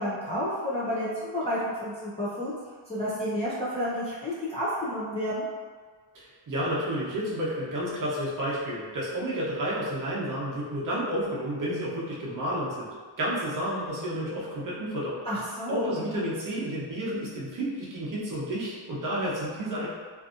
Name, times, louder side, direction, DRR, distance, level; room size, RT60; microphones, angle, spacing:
voice 1, 0.0-2.5 2.9-5.5 15.2-15.9, equal, 15° left, -11 dB, 0.4 m, -30 dB
voice 2, 6.1-12.9 13.2-15.2 15.7-19.9, equal, 40° right, -7 dB, 0.7 m, -31 dB
2.6 x 2.5 x 2.4 m, 1.5 s
wide cardioid pair, 165°, 47 cm